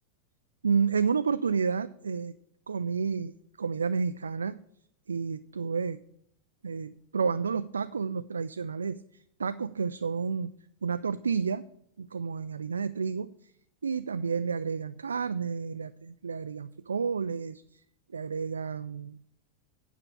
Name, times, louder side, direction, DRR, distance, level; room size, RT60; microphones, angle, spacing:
voice 1, 0.6-2.3 2.7-3.3 3.6-4.6 5.1-6.0 6.6-10.5 10.8-11.6 12.0-13.5 13.8-17.8 18.1-19.2, right 5 dB, 70° right, 12 dB, 0.3 m, -30 dB
9.6 x 5.9 x 7.1 m, 0.71 s
figure-of-eight pair, 90°, 0 cm